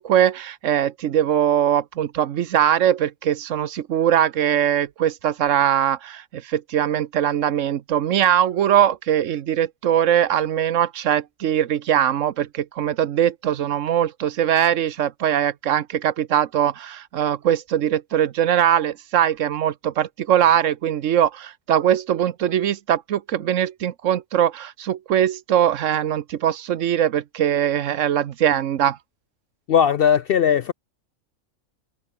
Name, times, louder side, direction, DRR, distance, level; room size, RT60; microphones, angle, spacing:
voice 1, 0.0-29.0, right 10 dB, 70° right, 1.1 m, -21 dB
voice 2, 29.7-30.7, left 8 dB, 65° left, 0.6 m, -18 dB
omnidirectional pair, 1.4 m